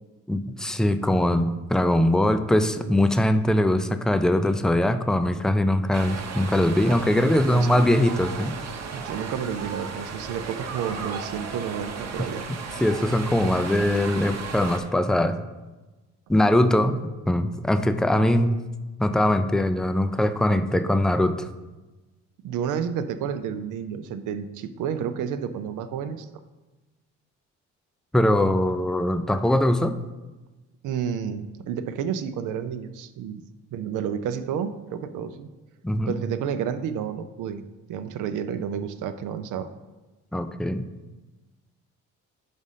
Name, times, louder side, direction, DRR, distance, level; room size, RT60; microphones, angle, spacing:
voice 1, 0.3-8.5 12.8-15.4 16.3-17.0 17.3-18.6 19.0-21.5 28.1-30.0 35.8-36.1 40.3-40.9, left 1 dB, ahead, 10 dB, 0.4 m, -22 dB
sound 1, 5.9-14.8, right 5 dB, 60° right, 0.9 m, -35 dB
voice 2, 7.5-7.9 8.9-12.5 22.4-26.3 30.8-33.4 33.7-35.5 36.1-37.6 37.9-39.7, right 8 dB, 85° right, 10 dB, 0.6 m, -30 dB
5.3 x 5.0 x 5.6 m, 1.1 s
cardioid pair, 90°, 30 cm